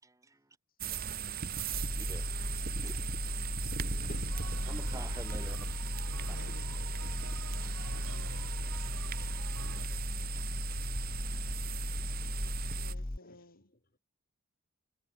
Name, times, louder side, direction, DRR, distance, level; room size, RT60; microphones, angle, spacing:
voice 1, 0.0-0.4 1.0-1.1 2.0-2.3 2.8-3.1 4.7-5.6 6.3-6.4 7.6-7.9 9.2-9.5 10.3-10.4 11.2-11.4, right 1 dB, 15° right, 1.8 m, -49 dB
sound 1, 0.8-12.9, right 6 dB, 40° right, 1.3 m, -39 dB
voice 2, 1.6-3.6 4.0-4.7 5.2-5.4 6.1-6.9 7.6-8.7 11.4-11.5 12.9-14.0, left 2 dB, 40° left, 3.8 m, -59 dB
sound 2, 1.7-13.2, left 1 dB, 10° left, 0.4 m, -37 dB
sound 3, 4.3-9.9, right 3 dB, 85° right, 4.9 m, -50 dB
voice 3, 9.7-10.4 12.2-13.7, left 2 dB, 60° left, 3.3 m, -59 dB
head